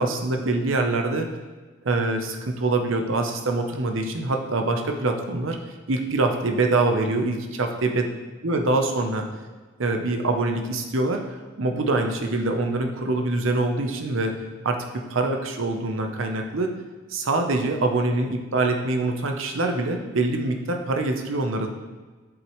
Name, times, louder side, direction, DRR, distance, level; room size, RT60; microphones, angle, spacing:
voice 1, 0.0-1.3 1.8-5.6 5.9-8.1 8.4-9.3 9.8-16.7 17.1-21.7, right 2 dB, 85° right, 4 dB, 0.8 m, -24 dB
8.1 x 7.3 x 3.2 m, 1.3 s
head